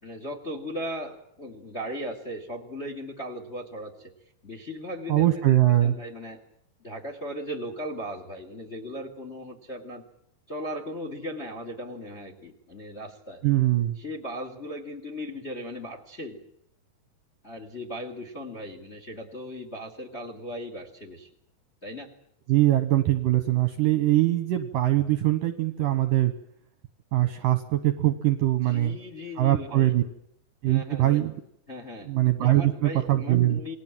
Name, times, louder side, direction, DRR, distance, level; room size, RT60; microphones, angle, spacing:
voice 1, 0.0-4.1 4.4-6.4 6.8-10.0 10.5-13.4 14.0-16.4 17.4-21.3 21.8-22.1 28.6-30.0 30.7-31.2 31.7-32.1 32.4-33.7, equal, 20° left, 5 dB, 1.8 m, -37 dB
voice 2, 5.1-5.9 13.4-14.0 22.5-26.3 27.1-29.0 29.4-30.0 30.6-31.3 32.1-33.6, right 15 dB, 65° right, 9 dB, 2.3 m, -22 dB
28.0 x 20.5 x 7.5 m, 0.74 s
omnidirectional pair, 5.1 m